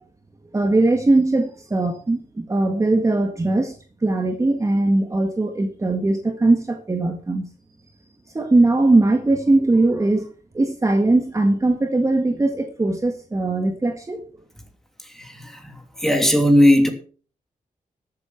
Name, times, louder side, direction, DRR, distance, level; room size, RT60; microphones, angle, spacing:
voice 1, 0.5-3.7 4.0-7.5 8.3-10.3 10.5-14.2, right 2 dB, 20° right, 1.7 m, -20 dB
voice 2, 15.1-16.9, left 1 dB, 5° left, 2.9 m, -18 dB
13.5 x 8.6 x 6.0 m
wide cardioid pair, 125°, 14 cm